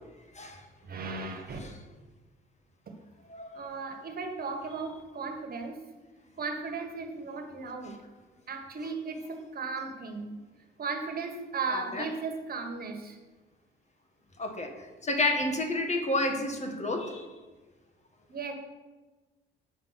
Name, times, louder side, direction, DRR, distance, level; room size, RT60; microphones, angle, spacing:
voice 1, 0.8-1.6 2.9-3.0 3.5-5.8 6.4-8.0 8.5-10.3 10.8-13.2 18.3-18.5, right 4 dB, 50° right, 5 dB, 1.6 m, -36 dB
voice 2, 3.3-3.6 11.7-12.0 14.4-17.3, left 2 dB, 35° left, 4 dB, 1.6 m, -30 dB
8.4 x 6.2 x 5.9 m, 1.2 s
cardioid pair, 90°, 20 cm